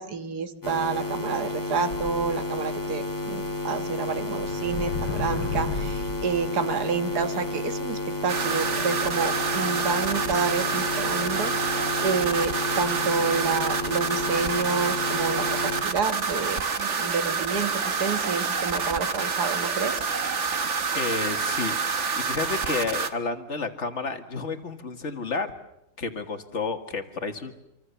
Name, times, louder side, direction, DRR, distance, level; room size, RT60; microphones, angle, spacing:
voice 1, 0.0-20.0, right 5 dB, 60° right, 9 dB, 1.9 m, -29 dB
sound 1, 0.6-15.8, left 2 dB, 10° left, 2.2 m, -31 dB
sound 2, 1.9-2.9 3.4-3.5 4.1-6.6, left 4 dB, 70° left, 1.9 m, -33 dB
sound 3, 8.3-23.1, right 5 dB, 45° right, 1.5 m, -28 dB
voice 2, 20.9-21.7 22.1-25.5 26.0-27.6, left 4 dB, 40° left, 6 dB, 2.1 m, -31 dB
26.5 x 25.0 x 7.0 m, 0.85 s
omnidirectional pair, 1.9 m